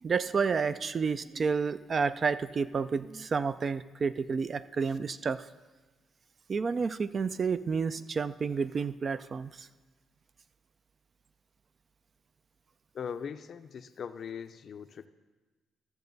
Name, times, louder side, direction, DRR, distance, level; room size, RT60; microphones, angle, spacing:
voice 1, 0.0-5.5 6.5-9.7, right 5 dB, 40° right, 14 dB, 0.3 m, -30 dB
voice 2, 12.9-15.1, left 7 dB, 55° left, 11 dB, 0.5 m, -40 dB
14.0 x 6.7 x 4.0 m, 1.3 s
cardioid pair, 90°, 0 cm